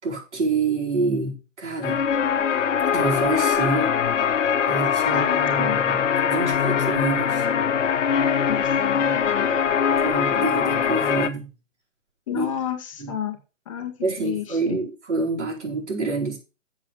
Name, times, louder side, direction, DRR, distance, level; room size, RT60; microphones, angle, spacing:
voice 1, 0.0-2.0 2.9-3.9 4.7-7.4 9.1-9.2 10.0-11.5 12.3-12.4 13.0-13.1 14.0-16.4, right 3 dB, 65° right, 4.6 m, -27 dB
sound 1, 1.8-11.3, left 7 dB, 70° left, 1.1 m, -22 dB
voice 2, 5.1-5.8 8.5-9.8 12.3-13.4 13.6-14.8, left 10 dB, 25° left, 1.2 m, -32 dB
7.5 x 7.0 x 6.1 m
hypercardioid pair, 160°, 38 cm